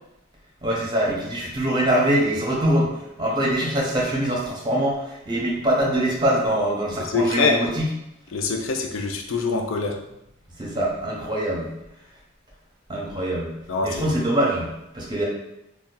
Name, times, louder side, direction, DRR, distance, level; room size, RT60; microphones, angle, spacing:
voice 1, 0.6-7.9 10.6-11.7 12.9-13.5 13.8-15.2, right 1 dB, 25° right, -3 dB, 0.8 m, -23 dB
voice 2, 7.1-7.6 8.3-10.0 13.7-13.9, left 4 dB, 70° left, 3 dB, 0.5 m, -24 dB
2.7 x 2.3 x 3.7 m, 0.86 s
head